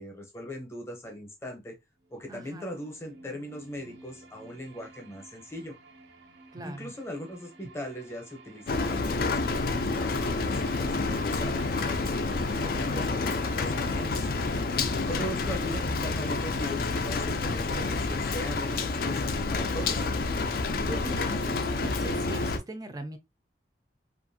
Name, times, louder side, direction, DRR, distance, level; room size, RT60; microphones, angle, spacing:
voice 1, 0.0-1.8 2.1-5.7 6.6-11.6 12.0-14.3 15.1-20.1, equal, 15° left, 0.7 m, -40 dB
sound 1, 2.0-18.0, right 3 dB, 80° right, 0.6 m, -52 dB
voice 2, 2.3-2.7 6.5-6.9 15.1-15.4 20.8-23.2, right 1 dB, 20° right, 0.4 m, -40 dB
Rain, 8.7-22.6, left 3 dB, 55° left, 0.3 m, -29 dB
2.6 x 2.4 x 2.6 m
head